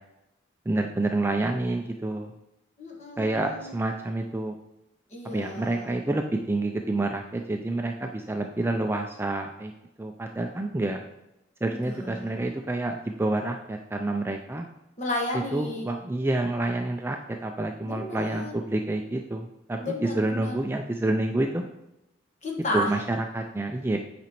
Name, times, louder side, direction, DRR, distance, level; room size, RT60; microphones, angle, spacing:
voice 1, 0.7-2.3 3.2-4.5 5.3-9.7 10.0-11.0 11.6-14.7 15.5-21.6 22.7-24.0, right 2 dB, 10° right, 3 dB, 0.3 m, -28 dB
voice 2, 2.8-3.7 5.1-6.0 11.6-12.4 15.0-15.9 17.8-18.5 19.8-20.6 22.4-23.0, left 1 dB, 35° left, -1 dB, 1.4 m, -33 dB
8.4 x 5.1 x 3.0 m, 0.91 s
head